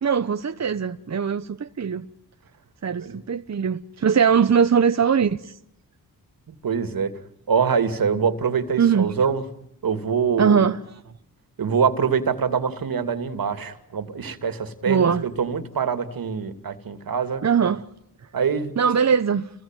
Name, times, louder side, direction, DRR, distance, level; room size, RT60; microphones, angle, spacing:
voice 1, 0.0-2.1 2.8-5.6 8.8-9.1 10.4-10.8 14.9-15.2 17.4-17.9 18.8-19.5, right 7 dB, 50° right, 1.1 m, -21 dB
voice 2, 6.5-7.1 7.5-9.4 9.8-10.7 11.6-17.4 18.3-18.7, right 6 dB, 70° right, 2.7 m, -24 dB
30.0 x 21.5 x 9.2 m
cardioid pair, 70°, 36 cm